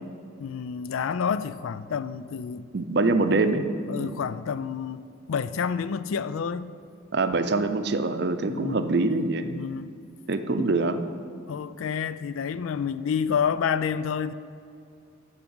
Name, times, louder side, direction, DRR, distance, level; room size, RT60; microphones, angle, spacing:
voice 1, 0.4-2.7 3.9-5.0 5.3-6.7 8.5-8.8 9.4-9.9 11.5-14.3, left 7 dB, 80° left, 0.4 m, -29 dB
voice 2, 2.7-4.1 7.1-9.5 10.3-11.0, right 3 dB, 50° right, 0.5 m, -24 dB
11.0 x 4.6 x 7.8 m
head